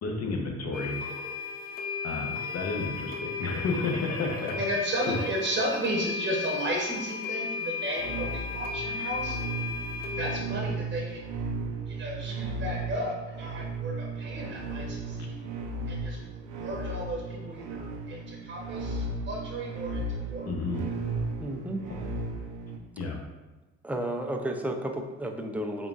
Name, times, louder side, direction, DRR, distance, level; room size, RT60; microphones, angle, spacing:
voice 1, 0.0-1.0 2.0-4.6 5.0-5.2 20.5-20.8 21.9-22.0 23.0-23.2, left 3 dB, 60° left, 1 dB, 0.8 m, -31 dB
sound 1, 0.7-10.4, left 5 dB, 30° left, 0.7 m, -35 dB
voice 2, 4.6-9.4 10.2-11.2 11.9-15.4 15.9-16.2 16.5-20.4, right 1 dB, 35° right, -2 dB, 0.8 m, -34 dB
sound 2, 8.0-22.8, right 3 dB, 75° right, 0.5 m, -35 dB
voice 3, 21.4-21.8 23.8-25.9, right 1 dB, 5° right, 3 dB, 0.4 m, -32 dB
3.8 x 3.5 x 2.4 m, 1.1 s
cardioid pair, 90°, 30 cm